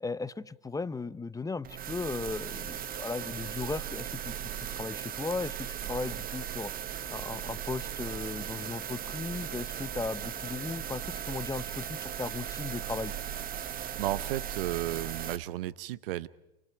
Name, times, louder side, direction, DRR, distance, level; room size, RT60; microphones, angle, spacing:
voice 1, 0.0-6.7 7.1-13.2, left 4 dB, 10° left, 16 dB, 0.8 m, -37 dB
sound 1, 1.6-15.4, right 9 dB, 30° right, 1.2 m, -37 dB
voice 2, 14.0-16.3, right 15 dB, 75° right, 20 dB, 0.9 m, -33 dB
29.5 x 28.0 x 4.7 m, 0.97 s
hypercardioid pair, 100°, 29 cm